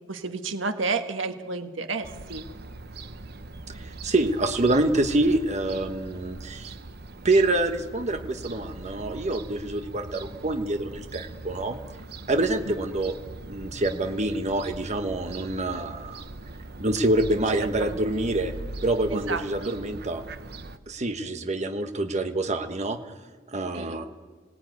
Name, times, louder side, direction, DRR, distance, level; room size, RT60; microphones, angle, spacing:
voice 1, 0.1-2.4 12.7-12.8 17.8-18.0 19.1-19.7 23.7-24.0, right 4 dB, 85° right, 7 dB, 1.7 m, -31 dB
Fowl / Gull seagull, 2.0-20.8, right 2 dB, 55° right, 1.0 m, -41 dB
voice 2, 3.7-6.7 7.2-11.8 12.3-13.1 13.5-16.2 16.8-18.5 18.8-20.2 20.9-23.0 23.5-24.1, right 2 dB, 35° right, 6 dB, 1.3 m, -26 dB
27.0 x 18.5 x 9.4 m, 1.5 s
head